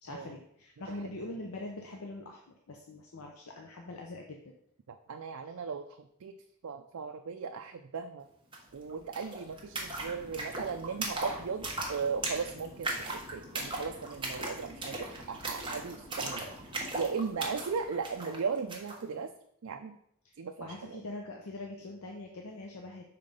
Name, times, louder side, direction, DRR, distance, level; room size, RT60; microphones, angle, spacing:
voice 1, 0.0-4.5 20.2-20.3 20.6-23.0, left 2 dB, 80° left, 1 dB, 0.7 m, -43 dB
voice 2, 4.9-6.3 6.6-8.3 8.7-16.4 16.9-19.3 19.6-20.0 20.4-21.1, right 5 dB, 80° right, 5 dB, 0.5 m, -37 dB
sound 1, 8.5-8.6 8.8-19.0, right 2 dB, 25° right, 1.2 m, -38 dB
5.8 x 3.8 x 5.1 m, 0.71 s
head